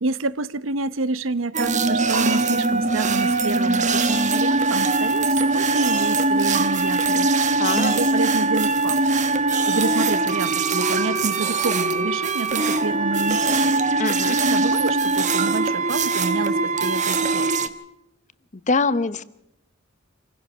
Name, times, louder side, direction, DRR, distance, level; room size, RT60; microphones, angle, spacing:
voice 1, 0.0-7.3 7.7-9.1 9.6-13.7 14.3-17.7, right 3 dB, 80° right, 0.8 m, -28 dB
sound 1, 1.5-17.7, right 3 dB, 40° right, 1.2 m, -21 dB
voice 2, 7.6-8.0 14.0-14.4 18.7-19.2, left 4 dB, 35° left, 0.8 m, -23 dB
26.5 x 16.5 x 6.2 m
head